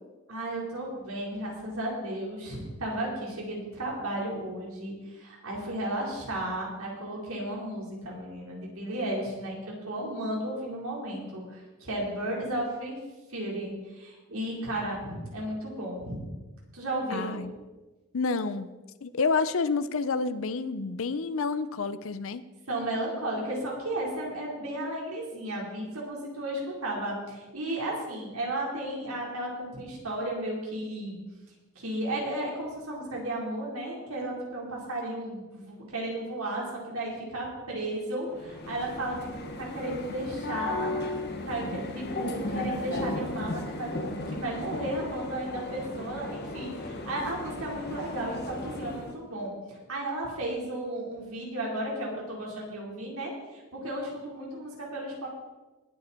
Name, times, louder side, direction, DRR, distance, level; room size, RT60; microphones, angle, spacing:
voice 1, 0.3-9.6 9.9-13.0 13.3-16.3 16.7-17.4 22.7-31.2 31.7-39.3 39.6-40.9 41.4-55.3, right 1 dB, 75° right, -3 dB, 4.4 m, -34 dB
voice 2, 17.1-17.5 18.1-18.7 19.0-22.4, left 4 dB, 65° left, 13 dB, 0.6 m, -29 dB
sound 1, 38.3-49.2, left 2 dB, 50° left, 1.6 m, -35 dB
19.5 x 8.9 x 4.4 m, 1.2 s
head